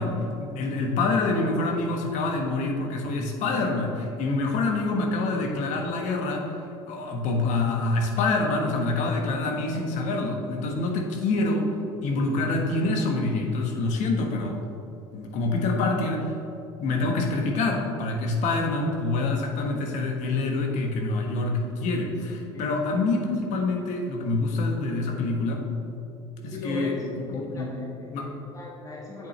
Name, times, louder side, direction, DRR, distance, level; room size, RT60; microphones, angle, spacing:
voice 1, 0.0-6.5 6.9-11.7 12.0-14.6 15.1-16.3 16.8-25.6 26.4-26.9 27.3-27.7 28.1-28.3, left 3 dB, 65° left, 2 dB, 1.3 m, -26 dB
voice 2, 9.3-9.7 22.5-22.8 26.4-27.0 27.3-29.3, left 2 dB, 25° left, -4 dB, 1.7 m, -38 dB
8.5 x 7.1 x 3.2 m, 2.9 s
hypercardioid pair, 80°, 14 cm